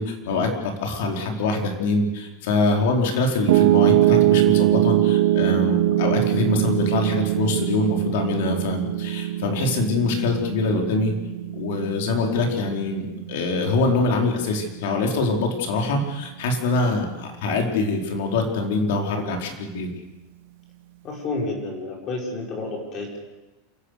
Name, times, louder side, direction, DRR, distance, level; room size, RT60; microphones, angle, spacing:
voice 1, 0.0-11.1 11.5-19.9, left 3 dB, 60° left, 2 dB, 4.5 m, -24 dB
Piano, 3.5-15.7, right 14 dB, 55° right, 1.0 m, -22 dB
voice 2, 21.0-23.2, left 2 dB, 25° left, 0 dB, 5.0 m, -30 dB
28.0 x 16.0 x 6.7 m, 1.0 s
supercardioid pair, 175°, 0 cm